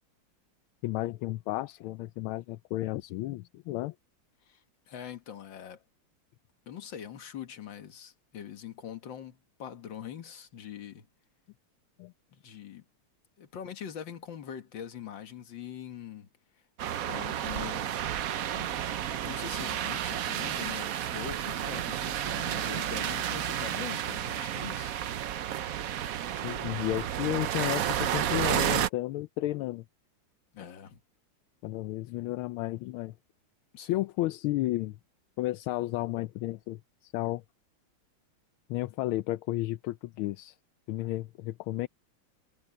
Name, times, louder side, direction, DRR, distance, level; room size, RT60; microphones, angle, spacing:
voice 1, 0.8-3.9 12.0-12.1 26.4-29.8 31.6-33.1 33.9-35.0 35.4-37.4 38.7-40.6 40.9-41.9, left 16 dB, 80° left, 1.4 m, -32 dB
voice 2, 4.4-5.8 6.7-11.1 12.3-12.9 13.4-16.3 17.1-18.0 18.4-18.7 19.2-24.9 30.5-31.0 33.7-34.1, left 9 dB, 60° left, 2.1 m, -43 dB
sound 1, 16.8-28.9, right 10 dB, 80° right, 0.7 m, -31 dB
omnidirectional pair, 2.4 m